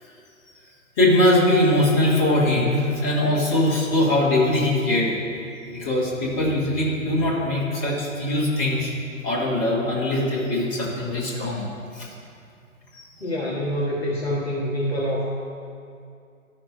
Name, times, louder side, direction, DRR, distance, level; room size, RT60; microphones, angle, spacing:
voice 1, 1.0-5.2 5.6-8.9 9.2-11.6 11.9-12.1 12.9-13.1, left 1 dB, 25° left, -6 dB, 2.1 m, -21 dB
voice 2, 13.2-15.2, equal, 45° left, -6 dB, 1.5 m, -26 dB
13.0 x 6.0 x 3.4 m, 2.4 s
figure-of-eight pair, 130°, 41 cm